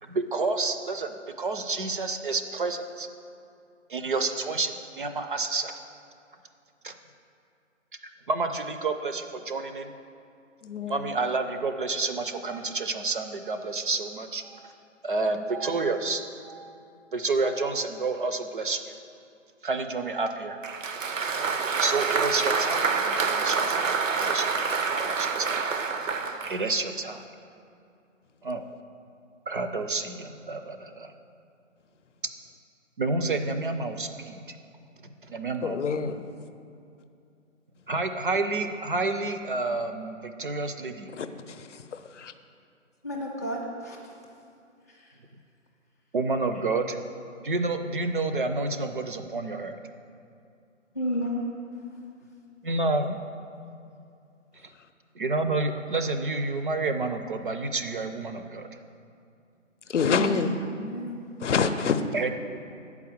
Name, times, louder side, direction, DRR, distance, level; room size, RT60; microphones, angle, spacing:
voice 1, 0.0-3.1 3.9-5.8 6.8-6.9 8.3-9.9 10.9-14.8 15.0-16.8 17.1-18.8 19.6-20.6 21.5-22.9 23.3-25.7 26.4-27.2 28.4-28.6 29.5-31.1 33.0-34.6 35.0-35.8 37.9-41.1 46.1-47.0 47.4-49.8 52.6-53.2 55.2-58.7 62.1-62.3, right 3 dB, 45° right, 7 dB, 0.4 m, -29 dB
voice 2, 10.6-11.1 35.6-36.2 41.1-42.3 59.9-60.5 61.4-62.0, left 6 dB, 70° left, 10 dB, 0.6 m, -27 dB
Applause, 20.6-26.6, right 5 dB, 80° right, 0.7 m, -27 dB
voice 3, 43.0-44.1 44.9-45.1 50.9-51.6 59.9-60.4 60.8-61.2, equal, 15° left, -6 dB, 0.4 m, -32 dB
6.9 x 4.7 x 6.9 m, 2.5 s
figure-of-eight pair, 140°, 38 cm